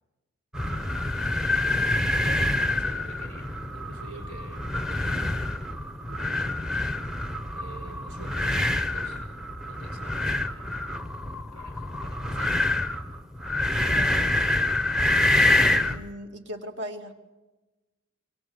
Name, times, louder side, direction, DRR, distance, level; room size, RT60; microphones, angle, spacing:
sound 1, 0.5-16.0, left 2 dB, 5° right, 0.8 m, -26 dB
voice 1, 0.7-1.1 1.4-1.7 2.2-5.6 6.1-6.5 7.5-10.9 11.5-12.6, right 3 dB, 85° right, 5 dB, 5.7 m, -48 dB
voice 2, 13.9-14.4 15.6-17.1, equal, 50° right, 5 dB, 2.4 m, -39 dB
25.5 x 25.0 x 7.9 m, 1.1 s
head